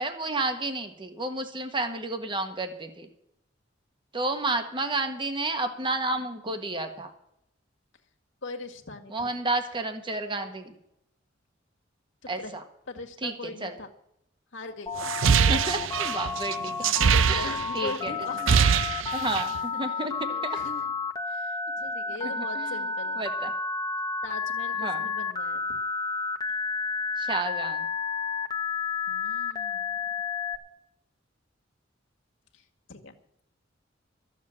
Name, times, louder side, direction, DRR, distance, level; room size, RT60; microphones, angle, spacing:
voice 1, 0.0-3.1 4.1-7.1 9.1-10.7 12.3-12.6 13.2-13.7 15.5-16.7 17.3-18.1 19.1-20.3 22.4-22.8 23.2-23.5 24.8-25.0 27.2-27.8, right 2 dB, 25° right, 7 dB, 1.5 m, -31 dB
voice 2, 8.4-9.3 12.2-12.6 12.9-13.9 14.5-14.9 15.2-15.6 16.7-19.5 19.7-19.8 20.3-20.9 21.3-23.2 24.2-25.8 29.1-30.0 32.5-32.6 32.9-33.1, left 3 dB, 70° left, 3 dB, 2.0 m, -41 dB
Telephone, 14.9-30.6, left 5 dB, 20° left, 1.3 m, -31 dB
sound 1, 15.0-17.9 18.2-19.6, right 7 dB, 85° right, 0.5 m, -23 dB
14.0 x 7.4 x 8.6 m, 0.76 s
head